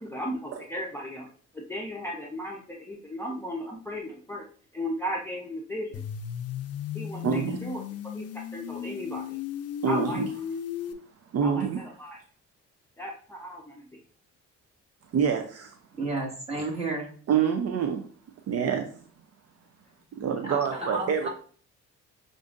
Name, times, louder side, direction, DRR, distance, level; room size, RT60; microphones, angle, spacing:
voice 1, 0.0-1.3 1.5-4.4 4.7-6.0 6.9-7.8 8.1-9.4 9.9-10.2 11.4-11.7 12.0-12.2 13.0-13.9, equal, 10° left, -2 dB, 0.7 m, -35 dB
sound 1, 5.9-10.9, left 9 dB, 55° left, 0.5 m, -35 dB
voice 2, 7.2-7.6 9.8-10.3 11.3-11.8 15.1-15.8 17.3-18.0 18.5-19.0 20.2-21.3, right 7 dB, 55° right, 5 dB, 0.5 m, -26 dB
voice 3, 15.9-17.1 20.4-21.3, right 2 dB, 20° right, -3 dB, 1.8 m, -32 dB
6.4 x 2.5 x 2.5 m, 0.44 s
cardioid pair, 90°, 30 cm